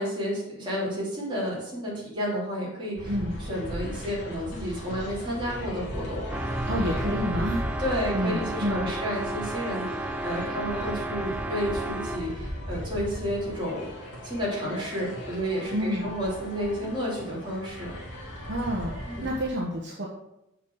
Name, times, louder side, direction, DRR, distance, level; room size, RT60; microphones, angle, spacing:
voice 1, 0.0-6.6 7.8-17.9 19.1-19.3, equal, 20° right, -6 dB, 3.4 m, -31 dB
sound 1, 3.0-19.5, equal, 55° left, 2.8 m, -37 dB
sound 2, 6.3-12.4, right 2 dB, 5° right, 0.3 m, -34 dB
voice 2, 6.7-7.6 8.1-8.9 15.7-16.1 18.5-20.1, equal, 50° right, -2 dB, 1.1 m, -29 dB
7.2 x 5.6 x 6.5 m, 0.87 s
head